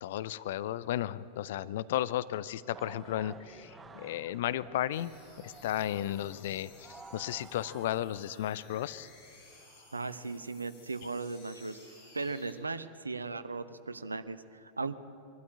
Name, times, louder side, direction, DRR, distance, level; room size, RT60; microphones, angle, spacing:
voice 1, 0.0-5.1 5.4-9.1, left 12 dB, 55° left, 16 dB, 0.5 m, -34 dB
sound 1, 2.7-8.2, right 4 dB, 15° right, 0.7 m, -52 dB
sound 2, 4.9-12.5, left 3 dB, 40° left, 7.3 m, -57 dB
voice 2, 9.9-11.8 12.1-14.9, right 3 dB, 80° right, 12 dB, 0.9 m, -37 dB
23.0 x 12.5 x 9.9 m, 2.6 s
figure-of-eight pair, 90°, 0 cm